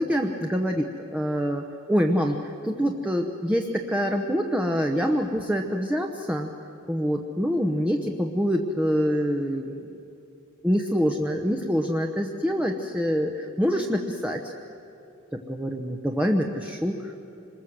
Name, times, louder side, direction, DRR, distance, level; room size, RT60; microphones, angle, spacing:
voice 1, 0.0-6.5 6.9-9.9 10.6-14.5 15.3-17.2, equal, 5° right, 2 dB, 0.9 m, -25 dB
25.5 x 21.0 x 7.8 m, 2.8 s
head